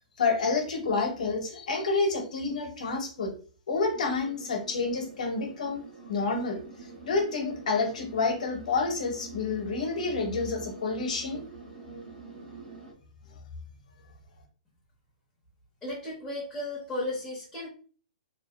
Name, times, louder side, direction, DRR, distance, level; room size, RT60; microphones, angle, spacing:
voice 1, 0.2-3.3 3.7-6.6 7.1-11.4, left 4 dB, 60° left, 3 dB, 0.7 m, -29 dB
sound 1, 3.9-12.9, right 4 dB, 85° right, 1.0 m, -46 dB
voice 2, 15.8-17.7, left 1 dB, 5° left, -6 dB, 0.5 m, -34 dB
2.6 x 2.3 x 2.3 m, 0.41 s
hypercardioid pair, 180°, 4 cm